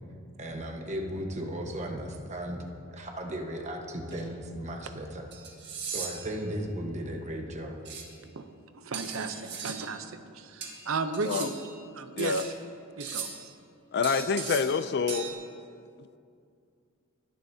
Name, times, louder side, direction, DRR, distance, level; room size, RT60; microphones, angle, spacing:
voice 1, 0.4-2.6 2.9-5.3 5.9-7.8, equal, 35° right, 2 dB, 1.2 m, -36 dB
sound 1, 4.1-4.2 5.3-6.3 7.8-8.1 8.9-9.9 10.6-11.7 12.2-12.5 13.0-13.5 14.0-14.8 15.1-15.3, right 6 dB, 55° right, 1.5 m, -38 dB
voice 2, 8.7-11.6 11.9-12.5 13.0-13.3, right 4 dB, 80° right, 9 dB, 0.7 m, -34 dB
voice 3, 13.9-15.3, left 5 dB, 55° left, 13 dB, 0.4 m, -27 dB
21.5 x 10.5 x 2.8 m, 2.4 s
head